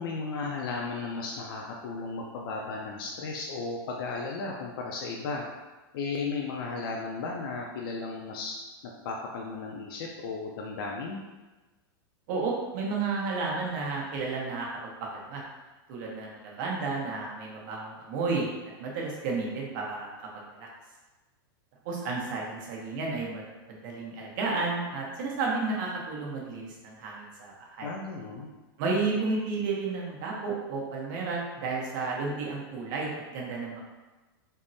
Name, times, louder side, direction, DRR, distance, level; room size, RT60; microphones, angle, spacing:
voice 1, 0.0-5.4 5.9-8.6 8.8-11.2 27.8-28.5, left 4 dB, 65° left, -1 dB, 0.4 m, -35 dB
voice 2, 12.3-14.7 15.1-15.4 15.9-18.5 18.8-20.1 20.6-20.7 21.8-27.9 28.8-33.8, right 3 dB, 55° right, -2 dB, 0.8 m, -32 dB
3.5 x 2.0 x 2.6 m, 1.2 s
supercardioid pair, 145°, 13 cm